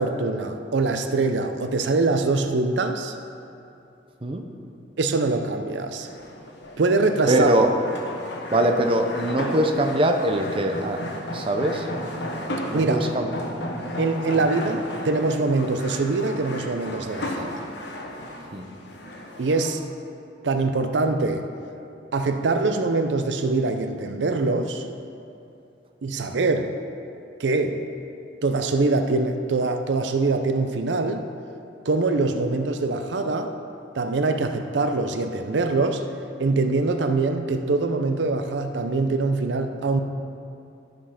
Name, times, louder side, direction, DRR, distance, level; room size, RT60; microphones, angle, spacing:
voice 1, 0.0-3.1 5.0-6.1 6.8-7.5 12.7-13.0 14.0-17.6 19.4-19.8 20.4-21.4 22.1-24.8 26.0-26.8 27.4-27.8 28.4-31.3 31.8-33.5 33.9-36.0 36.4-40.0, right 3 dB, 75° right, 7 dB, 0.5 m, -23 dB
sound 1, 6.0-19.7, left 1 dB, 70° left, 1.1 m, -34 dB
voice 2, 7.3-7.7 8.5-11.0 11.3-11.9 12.7-13.3 18.5-18.7, right 1 dB, 30° right, 4 dB, 0.6 m, -22 dB
12.5 x 5.3 x 5.8 m, 2.7 s
head